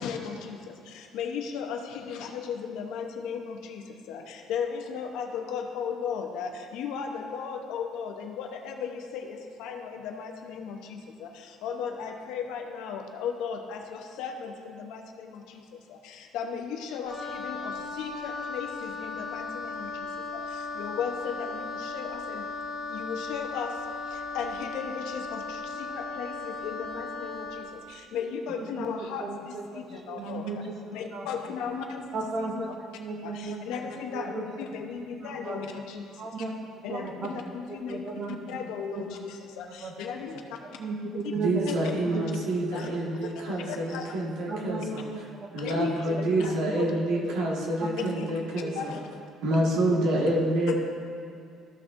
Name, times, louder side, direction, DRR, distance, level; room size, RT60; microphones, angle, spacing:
voice 1, 0.0-22.5 22.9-32.7 33.2-36.2 36.8-40.4 41.1-41.3 41.7-41.8 42.1-42.2 42.7-43.0 43.2-43.3 43.6-44.2 45.6-46.9 47.2-47.3 48.0-48.3 48.7-49.1, left 6 dB, 75° left, 3 dB, 0.9 m, -36 dB
Wind instrument woodwind instrument, 17.1-27.7, left 3 dB, 20° left, 1.3 m, -36 dB
voice 2, 28.6-30.6 31.1-31.5 32.1-32.7 33.0-33.6 34.1-34.5 35.2-35.6 36.2-36.5 36.9-37.4 37.7-39.1 39.8-39.9 40.6-43.3 43.7-43.8 44.5-45.7 46.1-47.2 47.8-48.3 48.6-48.8, right 3 dB, 35° right, 2 dB, 0.9 m, -36 dB
voice 3, 41.3-45.0 45.5-48.9 49.4-50.9, right 1 dB, 85° right, -2 dB, 1.7 m, -27 dB
14.0 x 6.1 x 2.6 m, 2.5 s
cardioid pair, 175°, 0 cm